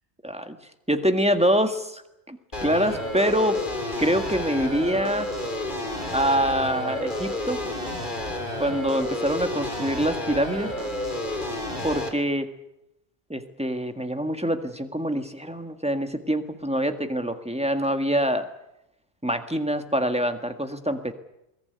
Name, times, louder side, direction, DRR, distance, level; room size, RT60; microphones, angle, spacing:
voice 1, 0.2-0.6 0.9-2.0 2.3-3.6 4.0-5.3 6.1-7.6 8.6-10.7 11.8-12.5 13.3-18.5 19.2-21.1, equal, 5° right, 7 dB, 1.7 m, -25 dB
sound 1, 2.5-12.1, left 1 dB, 50° left, 3.4 m, -31 dB
22.0 x 20.5 x 9.4 m, 0.87 s
omnidirectional pair, 1.0 m